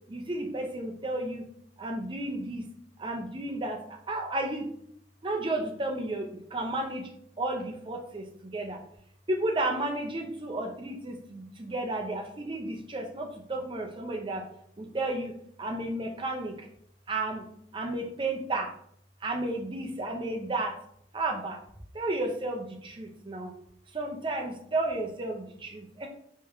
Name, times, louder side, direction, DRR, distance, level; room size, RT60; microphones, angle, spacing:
voice 1, 0.1-1.5 1.8-2.6 3.0-3.8 4.1-4.7 5.2-7.1 7.4-8.8 9.3-14.4 14.8-16.7 17.1-17.4 17.7-18.7 19.2-20.7 21.1-21.6 21.9-23.5 23.9-26.1, right 2 dB, 30° right, 3 dB, 0.6 m, -32 dB
3.4 x 3.1 x 3.5 m, 0.67 s
head